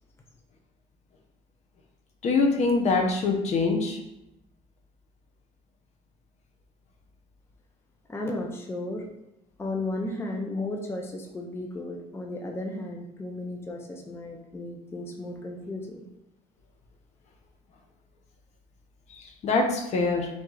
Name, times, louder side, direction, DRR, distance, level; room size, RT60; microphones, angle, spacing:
voice 1, 2.2-4.0 19.1-20.3, left 3 dB, 50° left, 2 dB, 0.8 m, -24 dB
voice 2, 8.1-9.1 9.6-16.1, left 2 dB, 15° left, 1 dB, 0.6 m, -34 dB
3.7 x 3.2 x 3.8 m, 0.88 s
cardioid pair, 100°, 14 cm